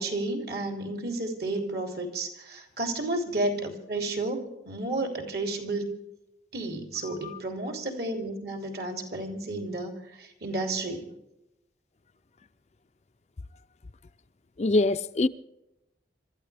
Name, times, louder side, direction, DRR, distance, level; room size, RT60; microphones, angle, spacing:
voice 1, 0.0-5.9 6.5-9.9 10.2-11.1, right 2 dB, 60° right, 3.1 m, -32 dB
voice 2, 14.6-15.3, left 2 dB, 35° left, 0.5 m, -24 dB
26.5 x 13.5 x 3.4 m
head